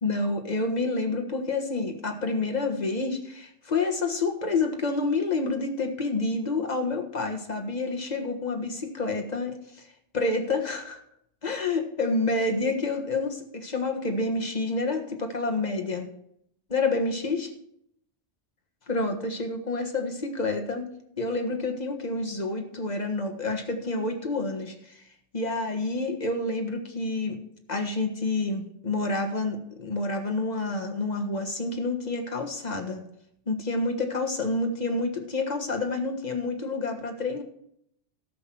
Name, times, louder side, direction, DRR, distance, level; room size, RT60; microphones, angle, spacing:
voice 1, 0.0-9.9 10.1-11.0 11.4-16.1 16.7-17.5 18.9-20.9 21.2-25.0 25.3-27.4 27.7-33.0 33.5-37.4, left 3 dB, 35° left, 4 dB, 1.6 m, -28 dB
13.5 x 6.1 x 6.2 m, 0.73 s
omnidirectional pair, 1.2 m